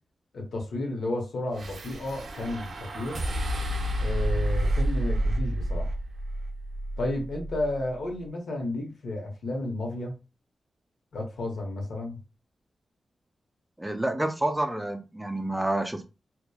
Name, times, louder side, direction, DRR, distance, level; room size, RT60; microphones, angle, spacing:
voice 1, 0.3-3.2 4.0-5.9 7.0-10.1 11.1-12.2, left 2 dB, 90° left, 1 dB, 0.8 m, -32 dB
sound 1, 1.5-7.9, right 1 dB, 75° right, 0.5 m, -30 dB
voice 2, 13.8-16.0, right 1 dB, 10° right, 6 dB, 0.3 m, -28 dB
2.8 x 2.1 x 2.2 m, 0.30 s
wide cardioid pair, 105°, 0 cm